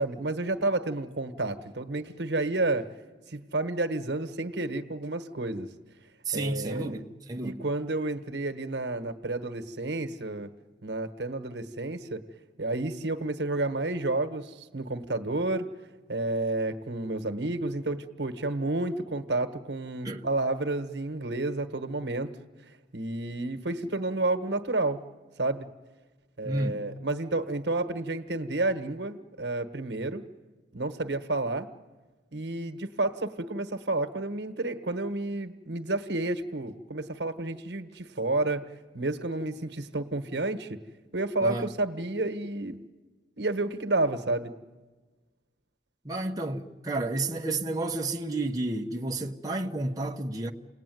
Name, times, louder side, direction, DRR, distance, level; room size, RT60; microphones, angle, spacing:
voice 1, 0.0-2.9 3.3-5.7 6.3-7.0 7.4-10.5 10.8-12.2 12.6-15.7 16.1-22.3 22.9-25.0 25.4-25.7 26.4-30.2 30.7-31.7 32.3-38.7 38.9-40.8 41.1-42.9 43.4-44.6, right 2 dB, 80° right, 1.3 m, -30 dB
voice 2, 6.2-7.6 20.0-20.2 26.4-26.9 41.4-41.7 46.0-50.5, right 2 dB, 20° right, 1.0 m, -31 dB
29.0 x 19.0 x 9.3 m
head